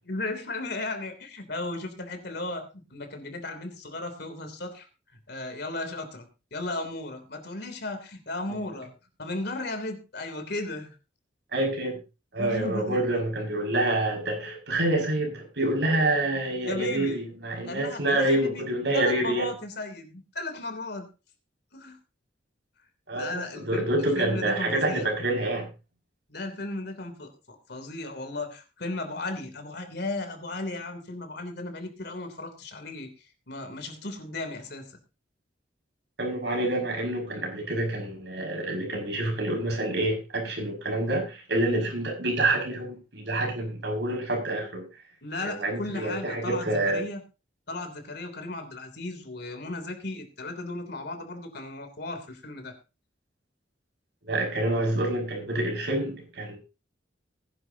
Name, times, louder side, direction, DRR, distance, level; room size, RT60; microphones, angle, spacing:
voice 1, 0.0-4.9 5.3-6.2 6.5-8.9 9.2-10.9 12.4-13.0 16.6-17.2 17.7-18.6 18.9-21.1 21.7-22.0 23.1-25.1 26.3-33.1 33.5-34.9 45.2-47.2 47.7-52.7, left 2 dB, 60° left, 6 dB, 3.2 m, -35 dB
voice 2, 11.5-12.0 12.3-19.5 23.1-25.7 36.2-44.8 45.4-47.0 54.2-56.6, right 1 dB, 65° right, 1 dB, 6.0 m, -27 dB
20.0 x 11.0 x 2.8 m, 0.31 s
head